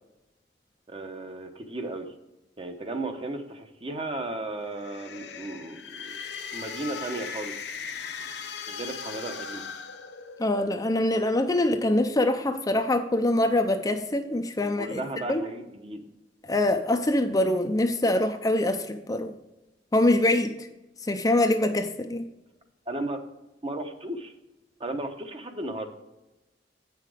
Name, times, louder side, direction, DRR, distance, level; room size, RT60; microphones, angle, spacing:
voice 1, 0.9-2.1 2.6-6.2 6.5-7.5 8.7-9.6 14.6-16.1 22.9-23.2 23.6-24.3 24.8-25.9, right 2 dB, 30° right, 6 dB, 0.9 m, -35 dB
sound 1, 4.6-10.7, left 6 dB, 65° left, 0.8 m, -38 dB
voice 2, 10.4-15.0 15.3-15.4 16.5-19.3 19.9-20.7 21.0-22.2, left 1 dB, 20° left, 6 dB, 0.5 m, -24 dB
8.3 x 5.8 x 4.9 m, 0.98 s
head